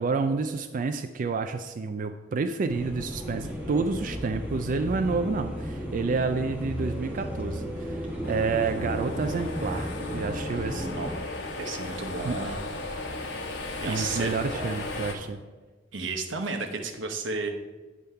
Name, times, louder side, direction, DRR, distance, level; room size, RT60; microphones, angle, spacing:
voice 1, 0.0-10.9 12.2-12.4 13.8-15.4, right 4 dB, 45° right, 7 dB, 0.3 m, -29 dB
sound 1, 2.7-11.2, equal, 10° right, 1.1 m, -34 dB
sound 2, 8.2-15.1, left 2 dB, 85° left, 1.3 m, -36 dB
voice 2, 11.6-12.6 13.8-14.7 15.9-17.5, right 3 dB, 90° right, 5 dB, 0.9 m, -33 dB
9.3 x 3.5 x 5.5 m, 1.3 s
head